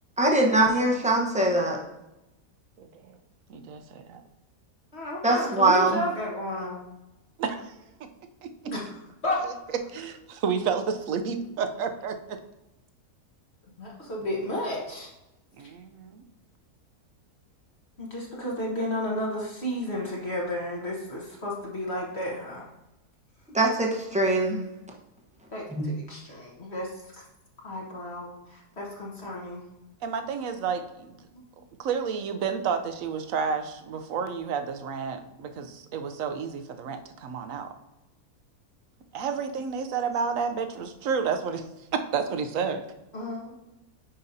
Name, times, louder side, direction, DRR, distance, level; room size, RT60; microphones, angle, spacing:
voice 1, 0.2-1.8 5.2-6.0 23.5-24.6 25.7-25.8, right 2 dB, 5° right, -2 dB, 0.8 m, -22 dB
voice 2, 3.5-4.2 7.4-7.8 8.4-8.5 9.4-9.5 9.9-10.1 10.4-12.1 15.6-16.2 30.0-31.1 31.6-37.7 39.1-41.6 41.9-42.8, right 6 dB, 65° right, 8 dB, 1.0 m, -30 dB
voice 3, 4.9-6.8 8.6-8.9 9.2-9.4 13.8-15.1 18.0-22.6 25.5-27.2 27.6-29.6 43.1-43.7, left 1 dB, 45° left, -3 dB, 1.5 m, -32 dB
9.7 x 5.1 x 2.7 m, 0.94 s
omnidirectional pair, 1.7 m